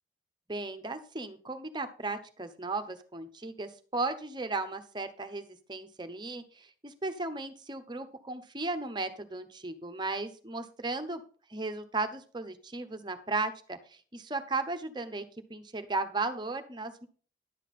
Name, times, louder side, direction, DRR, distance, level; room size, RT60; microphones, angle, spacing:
voice 1, 0.5-11.2 11.5-15.2 15.5-17.1, right 3 dB, 25° right, 8 dB, 0.8 m, -35 dB
11.0 x 8.0 x 4.2 m, 0.41 s
head